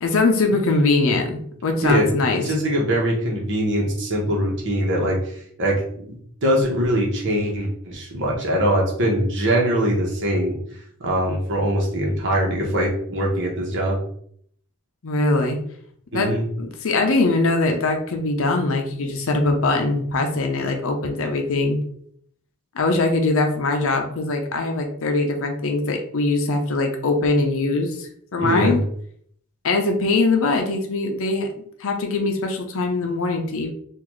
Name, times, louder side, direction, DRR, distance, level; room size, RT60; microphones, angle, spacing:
voice 1, 0.0-2.4 15.0-15.6 16.1-21.8 22.7-28.8 29.6-31.5 31.8-33.7, left 3 dB, 65° left, 4 dB, 0.6 m, -22 dB
voice 2, 2.4-5.2 5.6-5.8 6.1-6.2 6.4-10.6 11.0-14.0 16.1-16.4 28.4-28.8, equal, 55° right, -1 dB, 1.1 m, -22 dB
3.8 x 2.5 x 3.1 m, 0.64 s
head